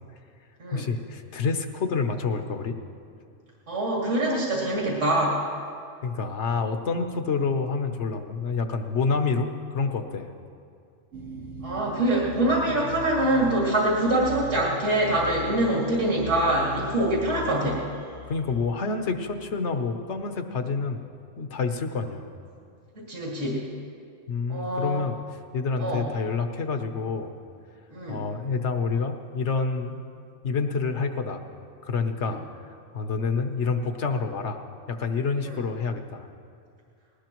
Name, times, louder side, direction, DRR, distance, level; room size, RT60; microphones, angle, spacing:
voice 1, 0.7-2.8 6.0-10.3 18.3-21.0 21.4-22.2 24.3-25.2 25.5-27.4 28.1-30.0 30.4-31.4 31.8-32.4 32.9-34.6 34.9-36.3, left 4 dB, 65° left, 7 dB, 1.2 m, -28 dB
voice 2, 3.7-5.4 11.6-17.8 23.0-23.6 24.5-25.0 25.8-26.1 27.9-28.2 32.3-32.4 35.4-35.6, right 1 dB, 65° right, -5 dB, 2.8 m, -24 dB
sound 1, 11.1-19.7, left 1 dB, 90° right, 2.2 m, -40 dB
20.0 x 18.0 x 3.1 m, 2.3 s
omnidirectional pair, 1.3 m